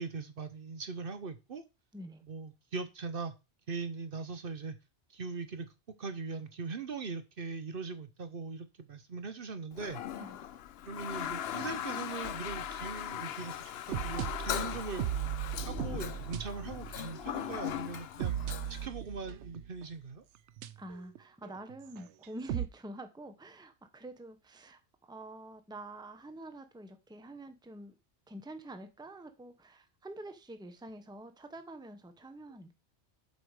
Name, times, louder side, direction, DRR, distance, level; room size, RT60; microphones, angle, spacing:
voice 1, 0.0-1.6 2.3-3.3 3.7-4.8 5.1-5.7 6.0-10.0 10.8-13.5 13.9-15.1 15.6-18.4 18.8-20.2, right 4 dB, 55° right, 1.0 m, -40 dB
Toilet flush, 9.7-18.9, left 10 dB, 70° left, 0.8 m, -39 dB
voice 2, 10.2-10.5 20.8-27.9 28.3-32.7, right 1 dB, 5° right, 0.8 m, -47 dB
sound 1, 12.5-19.8 20.6-21.2 21.4-22.7, right 10 dB, 85° right, 0.9 m, -38 dB
7.8 x 5.2 x 4.8 m
omnidirectional pair, 1.1 m